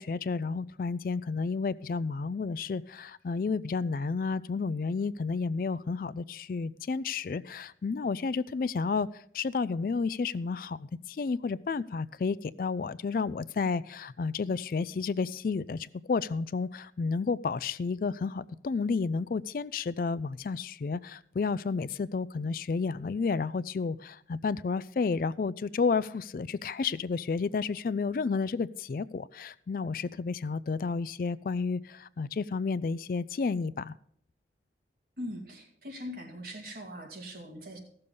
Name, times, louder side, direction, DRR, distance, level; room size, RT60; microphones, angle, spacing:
voice 1, 0.0-33.9, left 4 dB, 50° left, 18 dB, 0.3 m, -31 dB
voice 2, 35.2-37.8, equal, 55° right, 1 dB, 2.4 m, -41 dB
15.0 x 6.8 x 5.4 m, 0.66 s
head